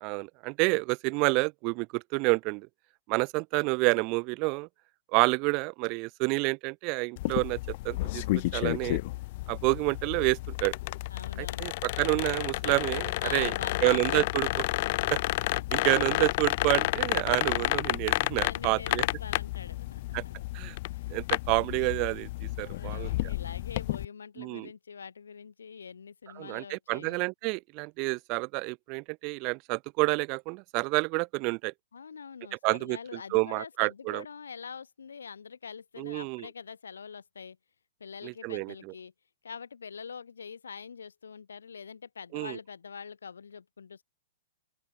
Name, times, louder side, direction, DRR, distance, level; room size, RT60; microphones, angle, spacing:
voice 1, 0.0-2.7 3.1-4.7 5.1-7.6 7.8-8.2 8.5-9.0 9.5-10.7 11.4-13.5 13.8-14.7 15.1-15.2 15.7-19.0 20.1-20.2 20.5-20.8 21.1-22.3 22.6-23.1 24.4-24.7 26.4-31.7 32.6-33.0 33.3-34.2 36.0-36.5 38.2-38.7 42.3-42.6, right 30 dB, 40° right, 0.4 m, -28 dB
sound 1, 7.2-24.0, left 20 dB, 50° left, 0.3 m, -31 dB
voice 2, 11.1-11.7 13.2-14.2 15.1-15.2 18.4-20.3 20.9-21.4 22.6-27.2 31.9-37.6 38.0-39.1 39.4-44.0, left 6 dB, 85° left, 4.2 m, -44 dB
open air
hypercardioid pair, 130°, 0 cm